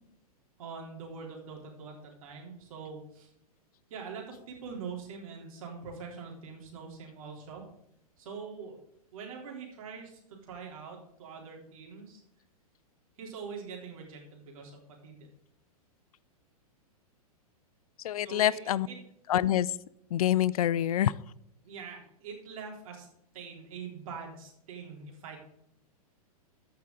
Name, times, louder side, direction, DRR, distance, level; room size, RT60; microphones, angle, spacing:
voice 1, 0.6-3.3 3.9-7.6 8.2-8.8 9.1-10.2 10.5-12.2 13.2-15.3 18.2-19.0 21.6-23.1 23.3-25.4, right 5 dB, 65° right, 0 dB, 3.5 m, -43 dB
voice 2, 18.0-18.9 19.3-19.8 20.1-21.1, left 12 dB, 70° left, 20 dB, 0.5 m, -26 dB
14.5 x 5.8 x 3.8 m, 0.78 s
hypercardioid pair, 125°, 19 cm